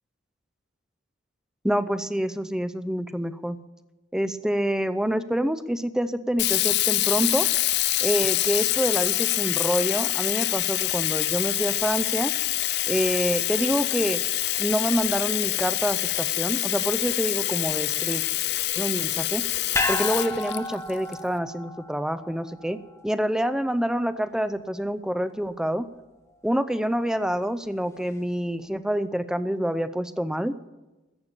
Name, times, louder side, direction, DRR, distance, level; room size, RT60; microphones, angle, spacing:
voice 1, 1.6-3.6 4.1-7.5 8.0-12.3 12.8-14.2 14.6-18.2 18.7-19.4 19.9-25.9 26.4-30.5, equal, 5° right, 13 dB, 0.5 m, -27 dB
Sink (filling or washing), 6.4-21.1, left 16 dB, 55° left, 0.4 m, -26 dB
sound 1, 19.7-24.1 24.4-24.5, left 2 dB, 15° left, 1.0 m, -32 dB
14.0 x 8.2 x 8.8 m, 1.1 s
head